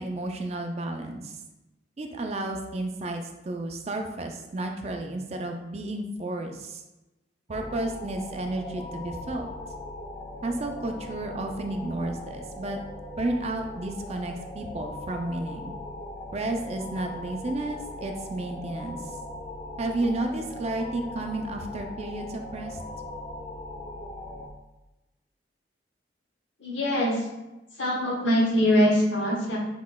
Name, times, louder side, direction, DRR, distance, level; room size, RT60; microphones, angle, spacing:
voice 1, 0.0-1.4 2.0-6.8 7.5-9.5 10.4-12.8 13.2-15.7 16.3-19.0 19.8-22.8, right 2 dB, 35° right, 4 dB, 0.4 m, -32 dB
sound 1, 7.5-24.5, left 1 dB, 25° left, 0.5 m, -39 dB
voice 2, 26.6-27.2 27.8-29.6, equal, 80° left, -2 dB, 1.1 m, -23 dB
6.0 x 3.1 x 2.2 m, 1.0 s
head